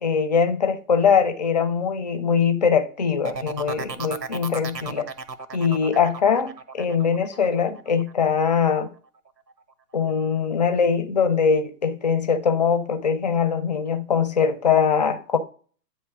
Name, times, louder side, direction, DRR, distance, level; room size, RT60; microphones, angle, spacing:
voice 1, 0.0-5.1 5.5-8.9 9.9-15.4, left 6 dB, 25° left, 0.6 m, -22 dB
sound 1, 3.2-8.9 9.3-9.7, right 4 dB, 85° right, 1.0 m, -35 dB
9.2 x 3.1 x 5.8 m
figure-of-eight pair, 130°, 49 cm